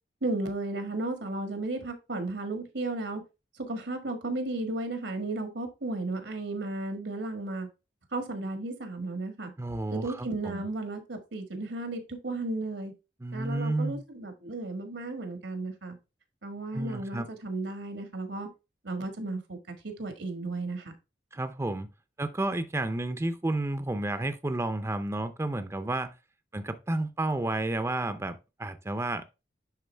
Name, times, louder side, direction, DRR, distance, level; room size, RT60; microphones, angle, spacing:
voice 1, 0.2-3.2 3.6-7.7 8.1-9.5 9.9-12.9 13.3-16.0 16.4-18.5 18.8-19.6 19.8-20.9, right 2 dB, 80° right, 1.5 m, -34 dB
voice 2, 9.6-10.7 13.2-14.0 16.7-17.3 21.3-21.9 22.2-26.1 26.5-29.2, right 2 dB, 15° right, 0.5 m, -31 dB
10.5 x 3.9 x 3.3 m
head